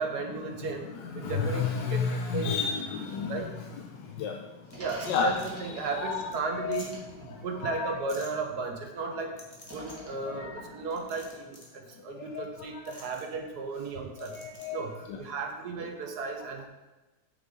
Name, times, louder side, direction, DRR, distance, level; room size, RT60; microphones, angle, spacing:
voice 1, 0.0-0.9 1.1-2.5 3.3-3.5 4.8-9.4 9.7-14.4 14.7-14.9 15.2-16.7, right 4 dB, 65° right, 4 dB, 1.4 m, -35 dB
voice 2, 0.6-3.7 4.2-4.4 5.1-5.4 5.8-6.8 7.3-7.9 10.2-10.7 12.1-12.9 14.2-15.2, left 6 dB, 80° left, 3 dB, 1.4 m, -33 dB
sound 1, 4.7-5.5 5.9-6.0 6.3-6.4 6.7-6.9 8.1-8.3 9.4-10.0 10.9-11.7 12.8-13.2 14.2-14.7, left 1 dB, 20° left, 1.3 m, -49 dB
sound 2, 4.7-8.8 9.6-11.3, equal, 10° right, 1.8 m, -48 dB
8.4 x 6.8 x 3.7 m, 1.1 s
omnidirectional pair, 2.0 m